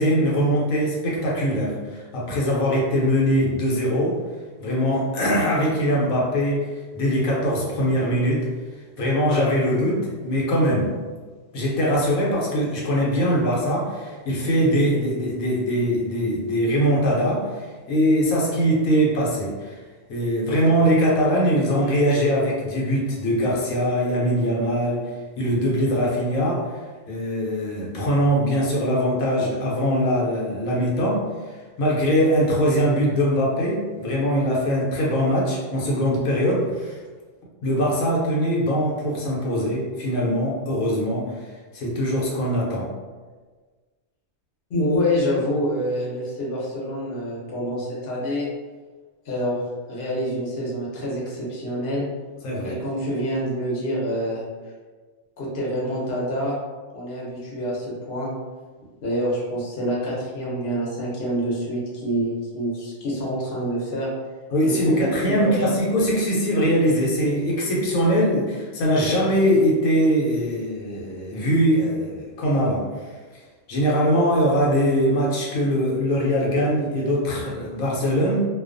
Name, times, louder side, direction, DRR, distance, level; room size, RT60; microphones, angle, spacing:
voice 1, 0.0-4.2 4.6-6.7 6.9-8.5 9.0-10.9 11.5-19.8 20.1-25.0 25.4-26.7 27.1-31.2 31.8-37.0 37.6-41.3 41.7-42.9 52.4-52.8 64.5-72.8 73.7-78.4, equal, 85° left, -4 dB, 1.1 m, -22 dB
voice 2, 44.7-48.5 49.3-49.6 49.9-52.0 52.6-54.4 55.4-56.5 56.9-58.3 59.0-64.1 64.6-65.7, equal, 50° left, -5 dB, 0.9 m, -26 dB
2.4 x 2.2 x 2.4 m, 1.4 s
omnidirectional pair, 1.4 m